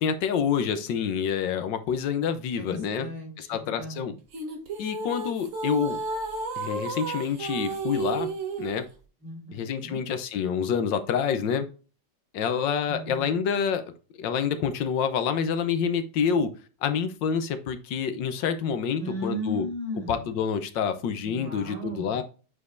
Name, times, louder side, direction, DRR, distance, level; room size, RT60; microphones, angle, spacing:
voice 1, 0.0-3.1 3.4-4.1 4.8-6.0 6.6-8.3 8.6-8.8 9.5-11.7 12.3-13.8 14.2-16.5 16.8-19.6 20.1-22.2, left 7 dB, 75° left, 9 dB, 1.5 m, -27 dB
voice 2, 2.6-4.0 9.2-10.0 12.9-13.4 19.0-20.4 21.2-22.2, equal, 75° right, -4 dB, 4.0 m, -36 dB
sound 1, 4.3-8.9, right 3 dB, 45° right, 1.4 m, -32 dB
8.4 x 5.0 x 2.5 m, 0.35 s
omnidirectional pair, 2.1 m